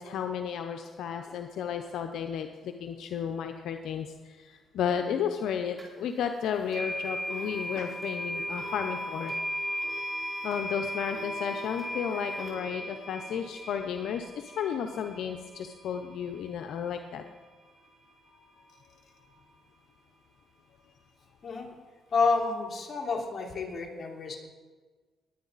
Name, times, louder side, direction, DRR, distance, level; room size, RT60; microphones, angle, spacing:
voice 1, 0.0-9.3 10.4-17.2 18.5-18.8, left 8 dB, 75° left, 6 dB, 0.7 m, -33 dB
sound 1, 5.8-5.9 6.7-17.7, equal, 20° right, 4.9 m, -37 dB
voice 2, 22.1-24.4, left 4 dB, 45° left, -1 dB, 3.0 m, -29 dB
20.0 x 9.3 x 4.1 m, 1.4 s
cardioid pair, 90°, 0 cm